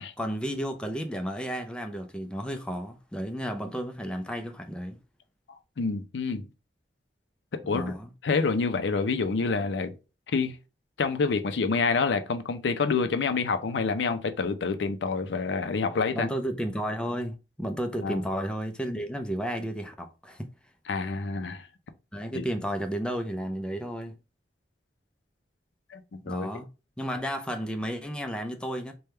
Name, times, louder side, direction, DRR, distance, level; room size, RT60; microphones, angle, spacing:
voice 1, 0.0-5.0 7.7-8.1 16.1-20.5 22.1-24.2 26.2-26.7 27.0-28.9, equal, 5° left, 0.4 m, -32 dB
voice 2, 5.8-6.4 7.7-7.9 8.2-10.0 10.3-10.6 11.0-16.3 18.0-18.2 20.9-21.7 22.3-22.4 25.9-26.5, left 4 dB, 90° left, 0.5 m, -27 dB
3.4 x 2.3 x 4.2 m
head